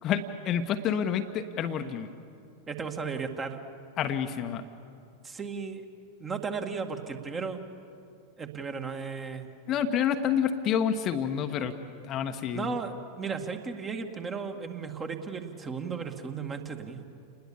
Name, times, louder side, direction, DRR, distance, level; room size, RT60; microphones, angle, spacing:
voice 1, 0.0-2.1 4.0-4.6 9.7-11.7 12.0-12.8, left 8 dB, 35° left, 6 dB, 1.2 m, -28 dB
voice 2, 2.7-3.6 5.2-5.8 6.2-7.6 8.4-9.5 12.5-17.0, right 5 dB, 20° right, 5 dB, 2.1 m, -35 dB
29.5 x 20.5 x 7.2 m, 2.5 s
figure-of-eight pair, 90°, 0 cm